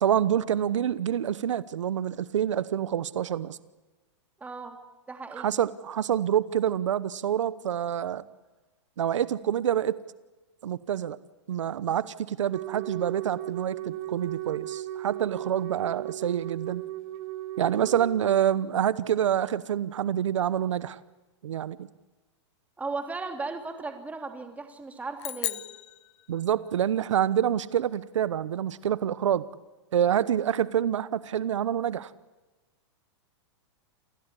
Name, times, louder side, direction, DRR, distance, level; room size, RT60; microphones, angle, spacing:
voice 1, 0.0-3.6 5.4-8.2 9.0-10.0 10.6-11.2 11.5-16.8 17.6-21.0 21.4-21.9 26.3-29.4 29.9-32.1, right 10 dB, 85° right, 17 dB, 1.0 m, -27 dB
voice 2, 4.4-4.8 5.1-5.5 17.7-17.9 22.8-25.6, right 3 dB, 10° right, 5 dB, 3.2 m, -36 dB
Wind instrument woodwind instrument, 12.5-18.6, right 14 dB, 50° right, 1.9 m, -36 dB
sound 1, 25.2-26.8, left 14 dB, 65° left, 1.0 m, -36 dB
29.0 x 18.0 x 9.9 m, 1.2 s
hypercardioid pair, 140°, 15 cm